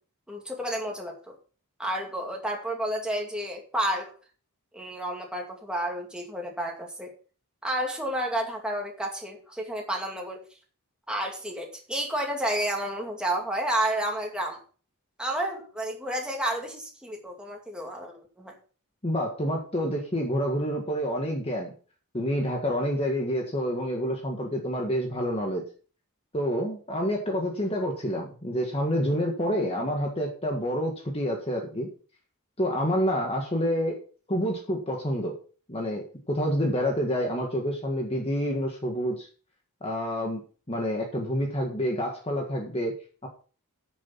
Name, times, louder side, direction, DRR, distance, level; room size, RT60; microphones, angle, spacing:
voice 1, 0.3-1.3 1.8-4.1 4.7-7.1 7.6-10.4 11.1-14.6 15.2-18.5, right 1 dB, 5° right, 0 dB, 2.3 m, -31 dB
voice 2, 19.0-21.7 22.1-25.6 26.3-31.9 32.6-34.0 34.3-35.4 35.7-39.3 39.8-40.4 40.7-42.9 43.2-43.3, equal, 25° left, 1 dB, 1.7 m, -28 dB
9.9 x 7.1 x 5.8 m, 0.39 s
head